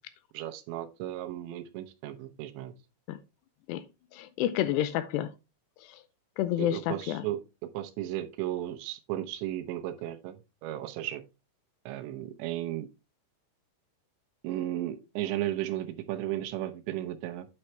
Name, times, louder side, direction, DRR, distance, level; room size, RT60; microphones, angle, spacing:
voice 1, 0.3-2.7 6.6-7.4 7.7-10.4 10.6-11.2 11.9-12.9 14.4-17.5, right 13 dB, 85° right, 3.1 m, -34 dB
voice 2, 4.1-5.3 5.8-6.0 6.4-7.2, left 12 dB, 85° left, 2.6 m, -29 dB
9.0 x 5.6 x 3.2 m
omnidirectional pair, 5.1 m